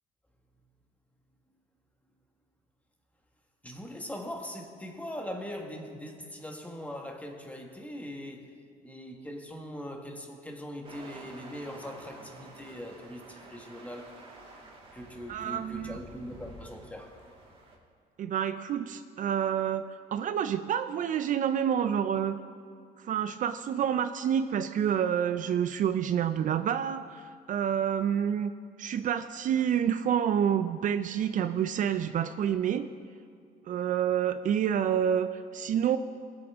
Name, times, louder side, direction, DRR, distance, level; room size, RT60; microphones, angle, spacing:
voice 1, 3.6-8.5 8.8-14.2 14.9-17.2, equal, 10° left, 3 dB, 1.4 m, -41 dB
sound 1, 10.8-17.8, right 2 dB, 30° right, 2.4 m, -50 dB
voice 2, 15.3-16.0 18.2-22.4 23.0-28.5 28.8-32.9 33.7-36.0, right 9 dB, 50° right, 10 dB, 0.4 m, -28 dB
20.5 x 7.9 x 3.6 m, 2.2 s
cardioid pair, 110°, 17 cm